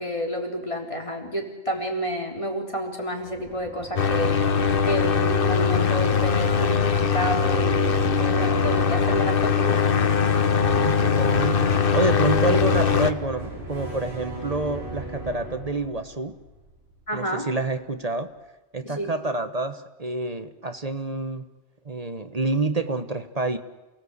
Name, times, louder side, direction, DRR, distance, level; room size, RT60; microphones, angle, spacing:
voice 1, 0.0-4.3 4.8-10.4 17.1-17.5 18.8-19.1, equal, 30° left, 1 dB, 3.8 m, -30 dB
sound 1, 3.2-17.3, right 2 dB, 80° right, 6.1 m, -37 dB
sound 2, 4.0-13.1, left 6 dB, 60° left, 1.2 m, -21 dB
voice 2, 10.8-16.4 17.1-18.3 18.7-21.5 21.8-23.6, right 2 dB, 40° right, 9 dB, 1.3 m, -28 dB
29.0 x 18.0 x 8.2 m, 1.1 s
omnidirectional pair, 1.1 m